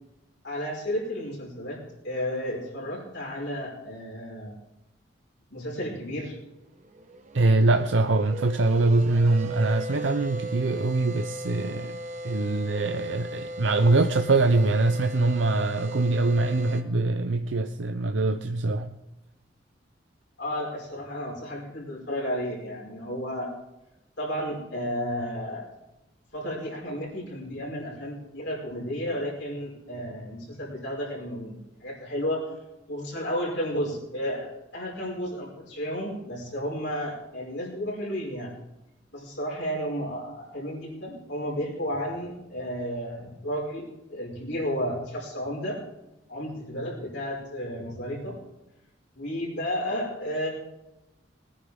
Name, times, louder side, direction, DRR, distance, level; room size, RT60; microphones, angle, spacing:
voice 1, 0.4-4.6 5.5-6.4 20.4-23.5 24.2-25.7 26.3-32.5 32.9-38.5 39.1-45.8 46.3-48.4 49.1-50.5, equal, 65° left, -4 dB, 5.4 m, -32 dB
sound 1, 6.7-16.8, right 1 dB, 40° right, 1.2 m, -38 dB
voice 2, 7.3-12.0 12.2-19.0, right 2 dB, 80° right, 6 dB, 0.7 m, -23 dB
21.0 x 9.9 x 3.7 m, 0.95 s
head